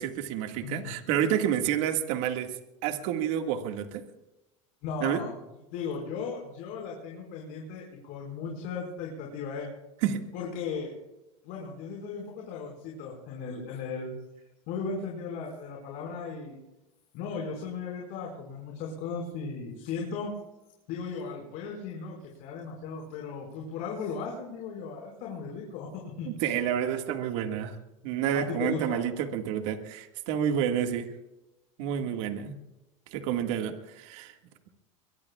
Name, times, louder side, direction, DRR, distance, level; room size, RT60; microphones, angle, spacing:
voice 1, 0.0-2.5 2.8-4.0 5.0-5.2 10.0-10.2 26.3-27.8 28.0-31.1 31.8-32.5 33.1-34.3, right 9 dB, 70° right, 5 dB, 2.0 m, -29 dB
voice 2, 0.6-0.9 4.8-5.3 5.7-9.7 10.3-11.0 11.4-14.2 14.7-16.6 17.1-20.3 20.9-26.5 28.3-29.0, left 5 dB, 60° left, -1 dB, 5.4 m, -36 dB
23.0 x 22.5 x 2.4 m, 0.99 s
supercardioid pair, 115°, 17 cm